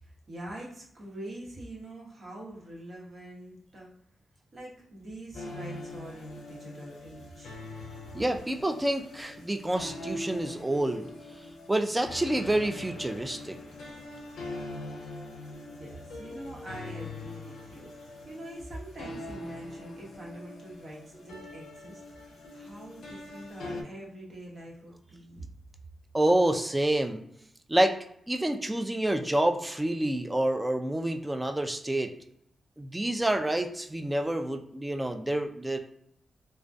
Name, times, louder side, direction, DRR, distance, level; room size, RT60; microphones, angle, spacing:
voice 1, 0.0-3.9 4.5-7.6 15.7-22.0 22.5-25.4, right 1 dB, 55° right, -4 dB, 1.0 m, -44 dB
sound 1, 5.3-23.8, left 2 dB, 85° left, 0.4 m, -42 dB
voice 2, 8.1-11.1 11.7-13.6 26.1-27.2 27.7-28.0 28.3-32.1 32.8-35.8, right 1 dB, 15° right, 5 dB, 0.3 m, -28 dB
2.2 x 2.1 x 2.5 m, 0.71 s
cardioid pair, 60°, 0 cm